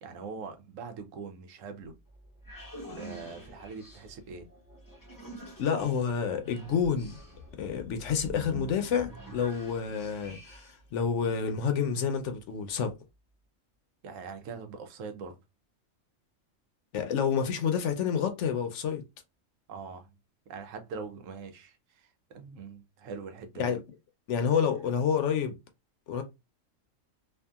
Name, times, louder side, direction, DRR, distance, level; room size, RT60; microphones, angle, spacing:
voice 1, 0.0-2.0 3.0-4.5 14.0-15.3 19.7-20.1 20.5-23.7, right 5 dB, 80° right, 1.0 m, -42 dB
sound 1, 2.1-10.9, right 1 dB, 25° left, 0.5 m, -47 dB
voice 2, 5.6-7.2 7.6-12.9 16.9-19.0 23.6-23.8 24.3-25.6 26.1-26.2, left 7 dB, 70° left, 0.8 m, -29 dB
2.7 x 2.5 x 2.3 m
omnidirectional pair, 1.3 m